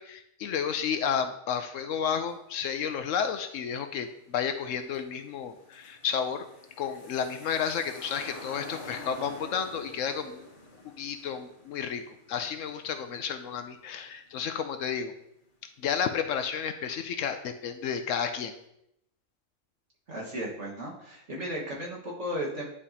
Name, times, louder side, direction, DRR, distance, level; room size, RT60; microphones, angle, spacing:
voice 1, 0.0-6.5 6.8-10.5 10.8-15.1 15.8-18.5, left 7 dB, 70° left, 8 dB, 0.9 m, -32 dB
sound 1, 4.1-4.2 4.5-14.3 14.6-14.7, left 2 dB, 40° left, 1.3 m, -48 dB
voice 2, 20.1-22.7, equal, 60° right, -4 dB, 1.9 m, -35 dB
9.9 x 4.9 x 2.8 m, 0.78 s
omnidirectional pair, 1.4 m